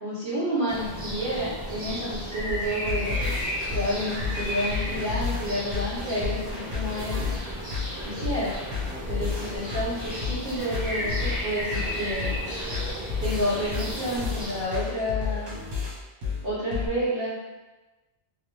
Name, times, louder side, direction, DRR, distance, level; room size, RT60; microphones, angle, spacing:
voice 1, 0.0-3.3 3.7-7.2 8.0-8.5 9.1-12.3 13.2-15.5 16.4-17.4, equal, 65° right, -10 dB, 1.0 m, -30 dB
sound 1, 0.7-14.7, equal, 30° right, 0.4 m, -34 dB
sound 2, 2.5-16.9, left 5 dB, 80° right, 1.2 m, -32 dB
2.8 x 2.0 x 3.0 m, 1.1 s
omnidirectional pair, 1.1 m